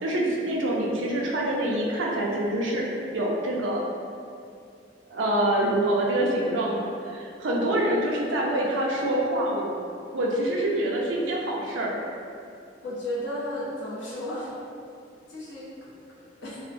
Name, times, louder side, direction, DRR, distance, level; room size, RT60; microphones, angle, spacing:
voice 1, 0.0-2.9 3.1-3.8 5.1-9.8 10.1-12.0, right 1 dB, 85° right, -3 dB, 0.4 m, -26 dB
voice 2, 12.8-14.5 15.3-16.6, left 1 dB, 75° left, -8 dB, 0.6 m, -34 dB
2.7 x 2.0 x 2.5 m, 2.4 s
head